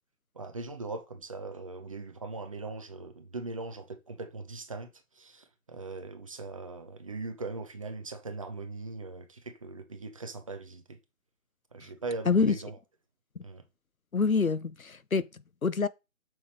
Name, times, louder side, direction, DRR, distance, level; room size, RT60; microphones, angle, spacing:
voice 1, 0.3-4.9 5.1-11.0 11.7-12.8 13.4-13.6, right 3 dB, 25° right, 1.0 m, -40 dB
voice 2, 14.1-15.9, left 4 dB, 85° left, 0.9 m, -27 dB
6.9 x 6.5 x 4.8 m
figure-of-eight pair, 150°, 41 cm